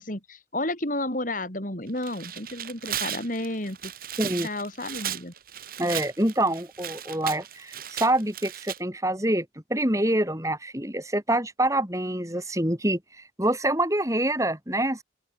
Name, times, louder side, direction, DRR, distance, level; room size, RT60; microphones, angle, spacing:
voice 1, 0.0-3.9 4.4-5.3, left 1 dB, 45° left, 5.0 m, -32 dB
Tearing, 1.9-8.8, right 10 dB, 50° right, 6.3 m, -36 dB
voice 2, 4.2-4.5 5.8-9.5 9.7-15.0, right 1 dB, 15° right, 6.9 m, -26 dB
open air
head